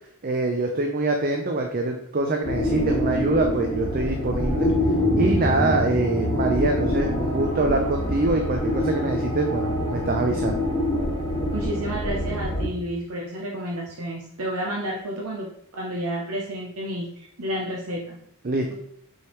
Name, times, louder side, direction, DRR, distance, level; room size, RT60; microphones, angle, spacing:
voice 1, 0.2-4.7 5.2-10.6 18.4-18.7, right 2 dB, 40° right, 3 dB, 0.5 m, -24 dB
sound 1, 2.4-12.7, left 1 dB, 20° left, 1.6 m, -25 dB
voice 2, 11.5-18.2, right 1 dB, 85° right, -2 dB, 0.9 m, -31 dB
6.3 x 4.6 x 3.2 m, 0.68 s
head